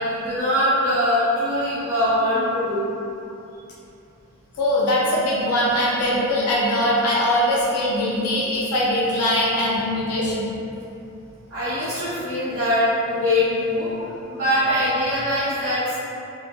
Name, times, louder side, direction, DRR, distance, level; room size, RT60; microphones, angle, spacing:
voice 1, 0.0-2.9 11.5-13.9 14.3-16.0, left 1 dB, 60° right, -14 dB, 0.8 m, -22 dB
voice 2, 4.6-10.5, left 1 dB, 80° left, -6 dB, 0.5 m, -21 dB
3.0 x 2.5 x 2.2 m, 2.8 s
head